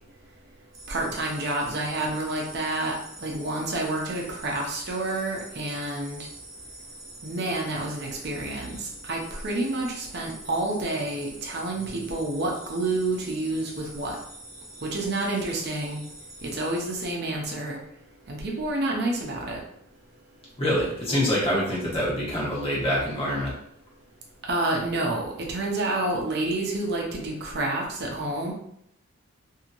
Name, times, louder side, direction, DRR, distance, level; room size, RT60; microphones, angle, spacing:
sound 1, 0.7-17.1, right 1 dB, 20° right, 0.8 m, -45 dB
voice 1, 0.9-6.3 7.2-14.2 14.8-16.0 16.4-17.8 18.3-19.6 24.5-28.5, right 2 dB, 55° right, -1 dB, 0.6 m, -29 dB
voice 2, 20.6-23.5, equal, 30° left, -6 dB, 1.1 m, -25 dB
3.0 x 2.7 x 2.5 m, 0.70 s
head